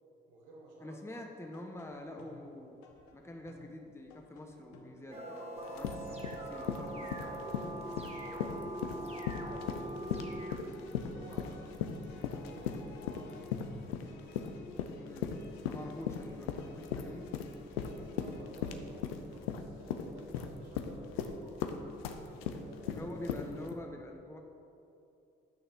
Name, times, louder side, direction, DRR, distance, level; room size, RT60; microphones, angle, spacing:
voice 1, 0.3-1.2 6.6-10.6 11.0-13.5 17.7-21.6 22.0-23.1, right 2 dB, 80° right, -1 dB, 1.3 m, -54 dB
voice 2, 0.8-2.8 3.1-7.1 15.1-15.3 15.7-17.3 22.9-24.4, left 1 dB, 10° left, 2 dB, 1.0 m, -46 dB
sound 1, 1.5-18.4, left 4 dB, 75° left, 0.9 m, -56 dB
sound 2, 5.1-10.6, right 1 dB, 20° right, 1.7 m, -42 dB
sound 3, 5.6-23.7, left 8 dB, 90° left, 0.5 m, -38 dB
9.4 x 6.3 x 5.1 m, 2.7 s
hypercardioid pair, 40°, 29 cm